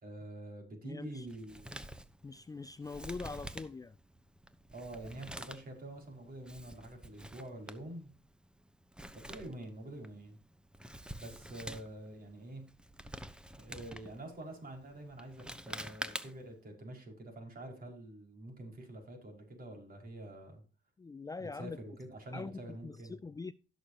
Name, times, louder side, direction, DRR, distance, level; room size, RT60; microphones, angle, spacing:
voice 1, 0.0-1.7 4.7-8.1 9.1-10.4 11.2-12.7 13.6-20.6 21.4-23.2, right 1 dB, 45° right, 5.6 m, -47 dB
voice 2, 0.8-1.3 2.2-4.0 21.0-21.8 22.3-23.5, left 4 dB, 20° left, 0.4 m, -43 dB
Male speech man speaking, 1.3-16.6, right 1 dB, 5° right, 1.0 m, -48 dB
16.0 x 6.9 x 2.9 m
cardioid pair, 90°, 20 cm